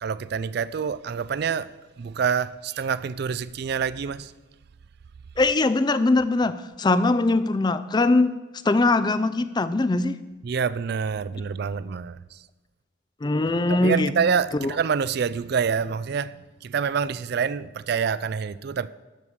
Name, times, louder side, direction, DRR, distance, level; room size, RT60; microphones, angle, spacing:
voice 1, 0.0-1.7 2.0-4.3 10.4-12.4 13.7-16.3 16.6-18.9, right 6 dB, 50° right, 0.3 m, -27 dB
voice 2, 5.4-8.3 8.6-10.2 13.2-14.1 14.6-14.7, left 2 dB, 20° left, 0.4 m, -21 dB
12.5 x 4.7 x 6.8 m
head